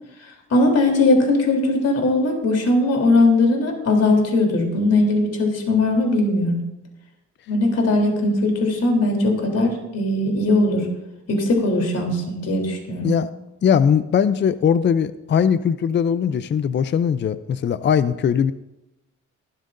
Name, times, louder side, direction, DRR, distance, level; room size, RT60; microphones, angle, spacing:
voice 1, 0.5-6.6 7.5-10.9 11.3-13.1, left 2 dB, 55° left, 2 dB, 3.4 m, -19 dB
voice 2, 13.6-18.5, left 7 dB, 40° left, 13 dB, 0.5 m, -20 dB
18.0 x 13.0 x 2.6 m, 0.93 s
cardioid pair, 90°, 30 cm